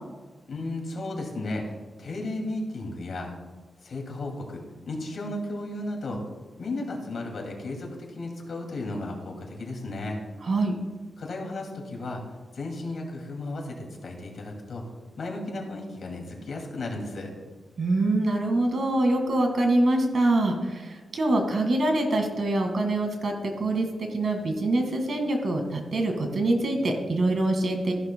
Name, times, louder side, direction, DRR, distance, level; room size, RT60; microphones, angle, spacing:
voice 1, 0.5-1.7 2.0-3.3 3.8-6.2 6.6-10.2 11.2-12.2 12.5-14.8 15.2-17.3, left 2 dB, 60° left, 1 dB, 2.3 m, -34 dB
voice 2, 10.4-10.7 17.8-27.9, right 2 dB, 50° right, 3 dB, 1.8 m, -25 dB
14.5 x 11.5 x 2.2 m, 1.3 s
wide cardioid pair, 135°, 0 cm